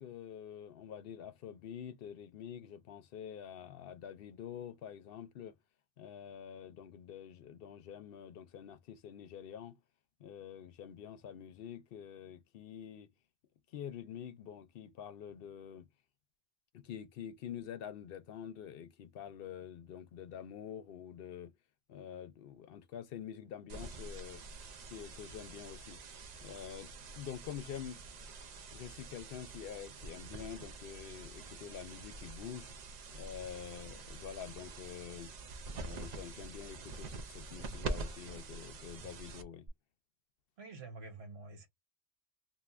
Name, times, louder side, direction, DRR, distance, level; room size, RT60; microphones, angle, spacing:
voice 1, 0.0-5.5 6.0-9.8 10.2-13.1 13.7-15.9 16.7-21.5 21.9-24.4 24.9-26.0 26.4-28.0 28.7-32.7 33.1-35.3 35.7-39.7, left 9 dB, 65° left, 0.7 m, -47 dB
sound 1, 23.7-39.7, right 3 dB, 50° right, 0.6 m, -46 dB
voice 2, 40.6-41.7, right 3 dB, 75° right, 1.3 m, -48 dB
3.2 x 2.5 x 2.4 m
omnidirectional pair, 1.1 m